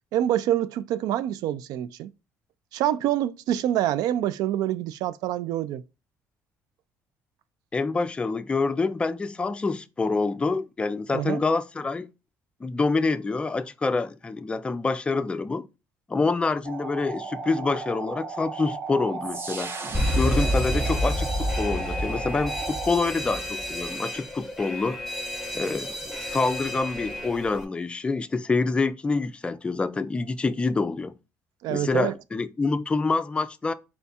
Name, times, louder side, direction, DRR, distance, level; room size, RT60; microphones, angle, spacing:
voice 1, 0.1-2.1 2.7-5.8 11.1-11.4 31.6-32.1, right 12 dB, 80° right, 0.3 m, -26 dB
voice 2, 7.7-12.1 12.6-15.6 16.1-19.7 20.2-25.0 25.5-26.0 26.3-31.1 31.7-33.7, left 3 dB, 15° left, 0.3 m, -26 dB
sound 1, 16.6-22.9, right 4 dB, 35° right, 0.8 m, -35 dB
Alarm, 19.9-27.6, equal, 5° right, 0.9 m, -29 dB
4.3 x 2.3 x 4.1 m
cardioid pair, 125°, 6 cm